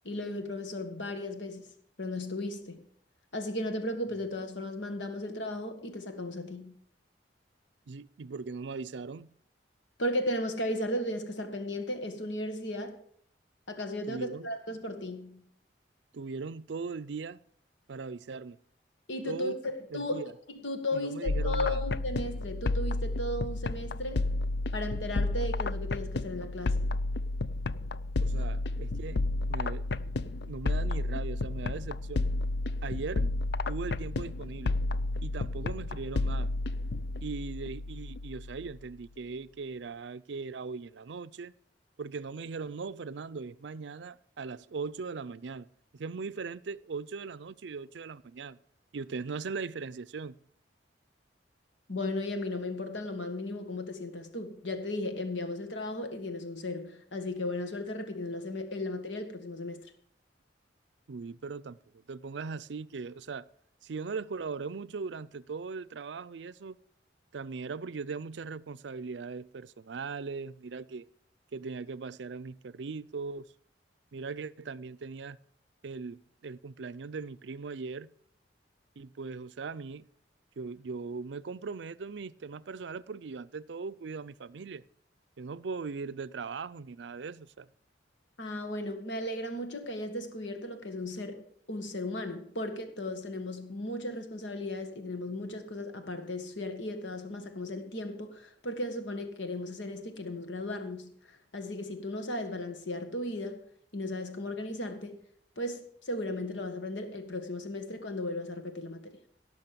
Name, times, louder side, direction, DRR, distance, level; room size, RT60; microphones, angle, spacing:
voice 1, 0.0-1.7 2.0-2.9 3.3-6.7 10.0-13.0 13.7-15.4 19.1-24.2 24.7-26.8 51.9-59.8 88.4-103.6 103.9-105.2 105.6-109.2, left 1 dB, 85° left, 1.7 m, -36 dB
voice 2, 7.9-9.3 14.1-14.5 16.1-17.4 17.9-18.6 19.3-19.6 19.9-20.3 20.9-21.8 28.2-29.2 29.5-32.3 32.8-33.3 33.7-34.8 35.2-36.5 37.2-41.5 42.0-45.7 45.9-48.6 48.9-50.4 61.1-61.8 62.1-63.5 63.8-66.8 67.3-71.1 71.5-73.4 74.1-75.4 75.8-78.1 79.0-80.0 80.6-84.8 85.4-87.7, right 4 dB, 75° right, 0.5 m, -39 dB
sound 1, 21.3-38.9, left 2 dB, 60° left, 0.5 m, -31 dB
17.5 x 6.5 x 6.8 m
head